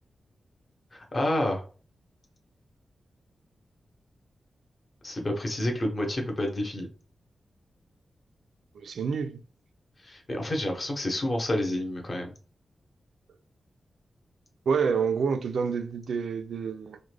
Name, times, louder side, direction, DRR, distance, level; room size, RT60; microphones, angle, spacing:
voice 1, 0.9-1.6 5.0-6.9 10.0-12.3, left 1 dB, 30° left, 0.7 m, -29 dB
voice 2, 8.7-9.4 14.7-17.0, right 6 dB, 80° right, 0.3 m, -28 dB
3.6 x 2.1 x 3.2 m
wide cardioid pair, 180°, 0 cm